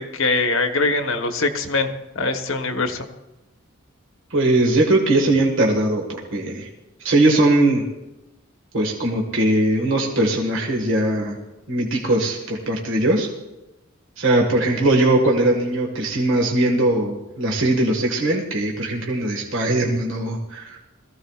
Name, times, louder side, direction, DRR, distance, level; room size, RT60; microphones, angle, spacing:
voice 1, 0.0-1.9 2.1-3.0, left 3 dB, 65° left, 5 dB, 1.2 m, -22 dB
voice 2, 4.3-6.7 7.0-7.9 8.7-11.4 11.7-13.3 14.2-20.8, right 1 dB, 60° right, 0 dB, 1.7 m, -20 dB
22.0 x 15.0 x 2.4 m, 1.0 s
head